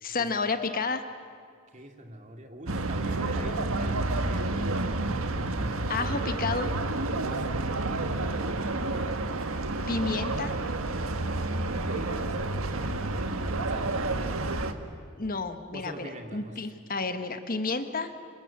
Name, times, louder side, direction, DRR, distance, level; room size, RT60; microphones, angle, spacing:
voice 1, 0.0-1.0 5.9-6.7 9.9-10.5 15.2-18.1, left 4 dB, 45° left, 9 dB, 1.3 m, -31 dB
voice 2, 1.7-5.1 5.5-6.2 7.2-9.2 11.8-14.1 14.4-14.8 15.7-16.6, right 1 dB, 35° right, 4 dB, 2.6 m, -44 dB
sound 1, 2.7-14.7, right 2 dB, 90° right, 1.5 m, -30 dB
30.0 x 26.0 x 7.4 m, 2.1 s
head